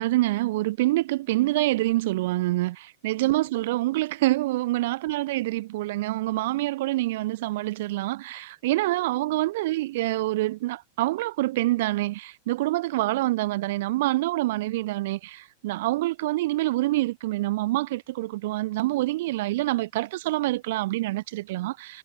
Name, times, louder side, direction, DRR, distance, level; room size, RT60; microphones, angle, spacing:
voice 1, 0.0-22.0, right 18 dB, 50° right, 4.1 m, -26 dB
figure-of-eight pair, 90°, 0 cm